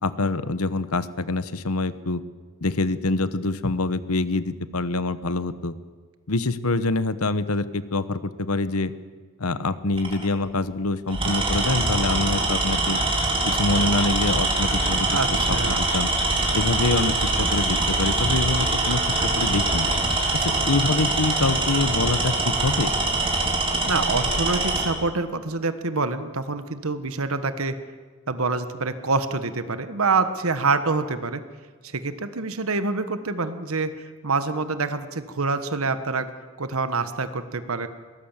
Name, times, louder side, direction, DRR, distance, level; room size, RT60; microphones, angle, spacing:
voice 1, 0.0-2.2 2.6-5.7 6.3-8.9 9.4-13.0 13.4-15.1 15.7-16.1 16.5-19.0 19.4-19.9 20.3-22.9, left 3 dB, 85° left, 14 dB, 1.1 m, -25 dB
Tools, 9.9-10.2 11.1-24.9, right 2 dB, 25° right, 4.1 m, -23 dB
sound 1, 12.7-20.5, left 3 dB, 20° left, 2.0 m, -39 dB
voice 2, 15.1-15.9 23.9-27.8 28.3-31.4 31.8-33.9 34.2-36.3 36.6-37.9, right 3 dB, 75° right, 10 dB, 1.3 m, -26 dB
22.5 x 18.5 x 7.4 m, 1.5 s
head